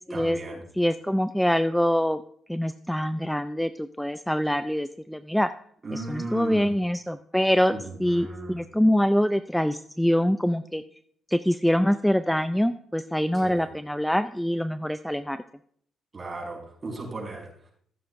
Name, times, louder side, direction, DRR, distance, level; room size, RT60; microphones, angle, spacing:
voice 1, 0.1-0.6 5.8-6.7 7.7-8.6 13.3-13.7 16.1-17.7, right 2 dB, 30° right, -1 dB, 5.1 m, -36 dB
voice 2, 0.8-2.2 2.5-5.5 5.9-7.7 8.0-10.8 11.3-15.4, equal, 5° left, 11 dB, 0.4 m, -24 dB
15.0 x 8.6 x 2.6 m, 0.62 s
cardioid pair, 80°, 0 cm